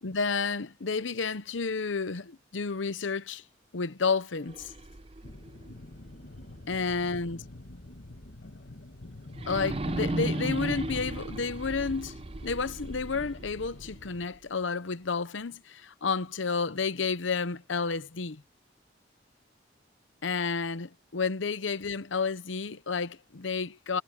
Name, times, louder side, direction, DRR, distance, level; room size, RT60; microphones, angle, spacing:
voice 1, 0.0-3.4 3.7-4.7 6.7-7.4 9.5-12.2 12.4-18.4 20.2-24.0, left 4 dB, 75° left, 0.8 m, -31 dB
sound 1, 4.4-7.4 7.8-7.9 9.3-14.4, right 1 dB, 30° right, 0.7 m, -36 dB
sound 2, 5.2-14.3, left 2 dB, 60° left, 1.5 m, -47 dB
head